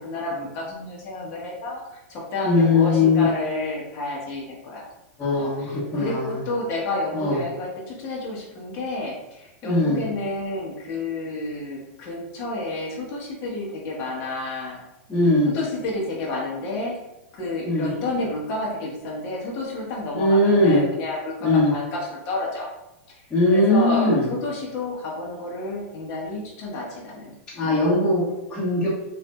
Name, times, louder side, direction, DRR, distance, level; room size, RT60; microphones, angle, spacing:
voice 1, 0.0-4.9 5.3-14.8 15.5-16.9 17.3-22.7 23.1-27.3 27.6-27.8, left 2 dB, 40° left, -3 dB, 0.8 m, -30 dB
voice 2, 2.4-3.2 5.2-6.4 7.1-7.4 9.6-10.0 15.1-15.5 17.6-17.9 20.1-20.8 21.4-21.7 23.3-24.3 27.5-28.2 28.5-28.9, left 2 dB, 10° left, -13 dB, 1.1 m, -20 dB
3.9 x 2.5 x 2.2 m, 0.95 s
hypercardioid pair, 135°, 7 cm